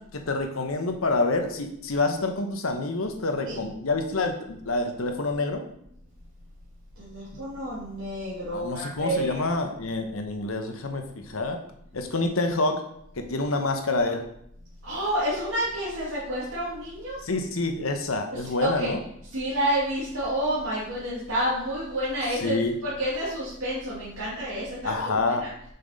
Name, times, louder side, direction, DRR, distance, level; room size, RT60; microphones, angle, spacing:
voice 1, 0.3-5.6 7.3-7.4 8.5-11.6 11.9-12.8 13.2-14.2 17.2-19.0 22.4-22.8 24.8-25.4, left 2 dB, 80° left, 5 dB, 1.0 m, -27 dB
voice 2, 7.0-9.5 14.8-17.2 18.6-18.9 19.3-22.6 22.8-25.5, right 1 dB, 80° right, -8 dB, 2.2 m, -29 dB
6.7 x 5.8 x 4.1 m, 0.73 s
head